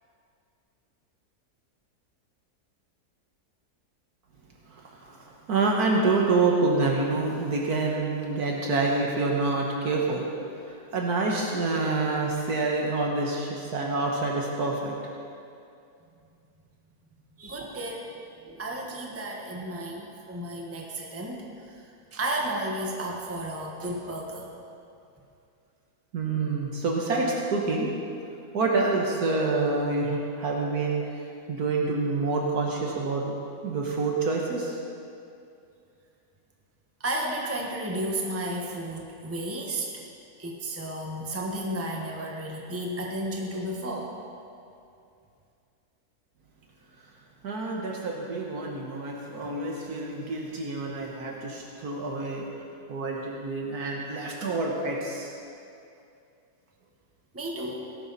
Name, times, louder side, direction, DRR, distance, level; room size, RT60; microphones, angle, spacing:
voice 1, 4.7-10.3 10.6-14.9 26.1-27.9 28.5-33.3 33.6-34.8 47.4-52.5 52.9-55.4, right 3 dB, 70° right, -1 dB, 1.8 m, -27 dB
voice 2, 17.4-18.1 18.4-24.5 37.0-40.0 40.4-44.2 57.3-57.9, right 1 dB, 10° right, -1 dB, 1.3 m, -33 dB
18.0 x 11.5 x 4.1 m, 2.5 s
omnidirectional pair, 1.7 m